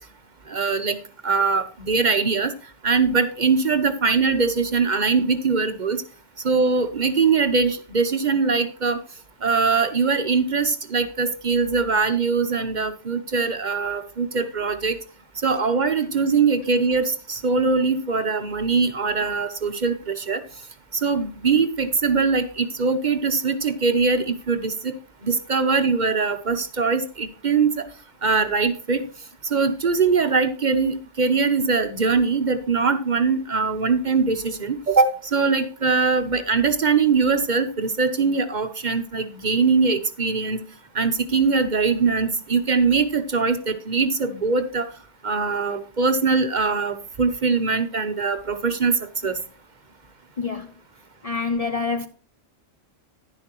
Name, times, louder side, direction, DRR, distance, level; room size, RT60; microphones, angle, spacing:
voice 1, 0.5-1.0 1.2-2.5 2.8-6.0 6.4-9.0 9.4-15.0 15.4-20.4 21.0-24.9 25.2-27.9 28.2-29.0 29.4-40.6 40.9-44.9 45.2-48.9 49.2-49.4, right 4 dB, 45° right, 0.8 m, -22 dB
voice 2, 50.4-50.7 51.2-52.1, left 4 dB, 40° left, 0.6 m, -26 dB
10.5 x 10.5 x 3.0 m
omnidirectional pair, 1.2 m